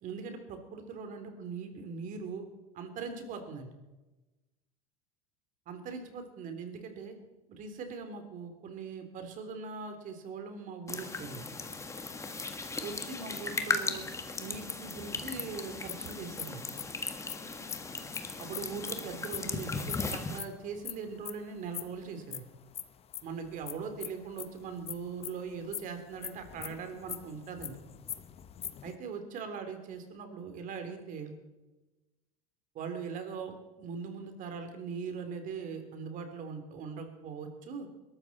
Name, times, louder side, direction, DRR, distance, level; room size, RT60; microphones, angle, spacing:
voice 1, 0.0-2.4 2.7-3.7 5.7-7.1 7.5-11.4 12.8-14.0 14.3-16.6 18.4-22.4 23.2-27.8 28.8-31.3 32.7-37.9, right 5 dB, 45° right, 6 dB, 3.4 m, -41 dB
sound 1, 10.9-20.4, left 3 dB, 15° left, 1.7 m, -37 dB
sound 2, 15.9-19.4 19.7-21.4 21.7-29.0, left 10 dB, 35° left, 1.0 m, -42 dB
22.0 x 13.0 x 4.3 m, 1.1 s
supercardioid pair, 100°, 18 cm